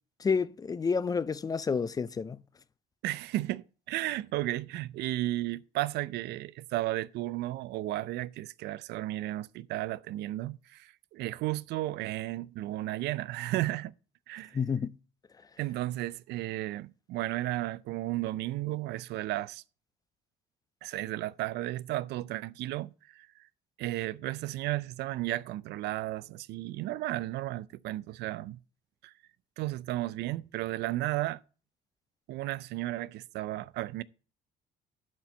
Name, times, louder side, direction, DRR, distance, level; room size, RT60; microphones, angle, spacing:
voice 1, 0.2-2.4 14.5-14.9, left 5 dB, 20° left, 0.4 m, -29 dB
voice 2, 3.0-13.9 14.3-14.6 15.6-19.6 20.8-23.3 23.8-28.6 29.0-29.1 29.6-31.4 32.3-34.0, right 16 dB, 80° right, 0.5 m, -34 dB
12.0 x 4.4 x 6.7 m
cardioid pair, 110°, 17 cm